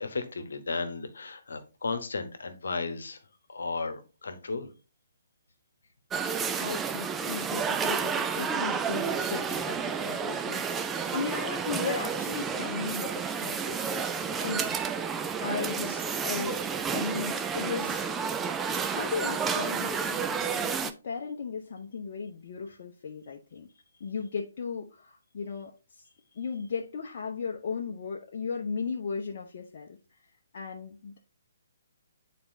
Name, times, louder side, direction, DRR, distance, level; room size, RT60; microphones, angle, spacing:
voice 1, 0.0-3.2 3.5-4.7 10.7-11.1, left 4 dB, 70° left, 8 dB, 1.1 m, -35 dB
sound 1, 6.1-20.9, right 6 dB, 10° right, 0.4 m, -31 dB
voice 2, 6.6-10.8 11.1-14.1 14.4-15.0 15.4-18.0 18.6-23.7 24.0-26.0 26.3-30.0 30.5-31.2, left 5 dB, 50° left, 1 dB, 0.7 m, -36 dB
8.7 x 4.2 x 2.7 m, 0.31 s
figure-of-eight pair, 135°, 0 cm